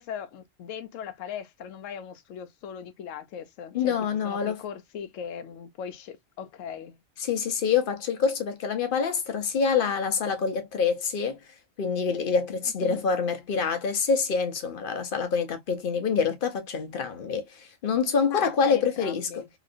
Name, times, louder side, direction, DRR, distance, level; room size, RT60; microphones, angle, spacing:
voice 1, 0.0-4.0 4.2-7.0 12.8-13.0 18.3-19.5, left 8 dB, 80° left, 1.0 m, -39 dB
voice 2, 3.7-4.6 7.2-11.4 11.8-19.4, left 6 dB, 50° left, 0.8 m, -26 dB
3.0 x 2.9 x 2.4 m
omnidirectional pair, 1.3 m